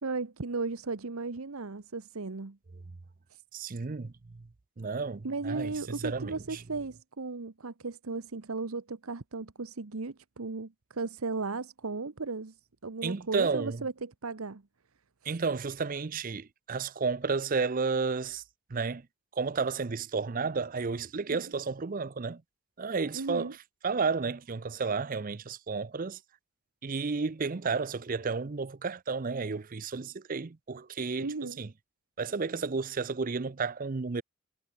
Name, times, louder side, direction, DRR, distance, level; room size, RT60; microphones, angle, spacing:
voice 1, 0.0-2.6 3.3-3.4 5.2-12.5 12.8-14.6 15.2-15.4 21.3-21.4 23.1-23.5 31.2-31.6, right 3 dB, 80° right, 1.0 m, -36 dB
voice 2, 3.5-4.5 4.8-6.6 13.0-13.8 15.2-18.4 18.7-19.1 19.3-22.4 22.8-23.6 23.8-26.2 26.8-31.7 32.2-34.2, right 4 dB, 40° right, 0.5 m, -32 dB
head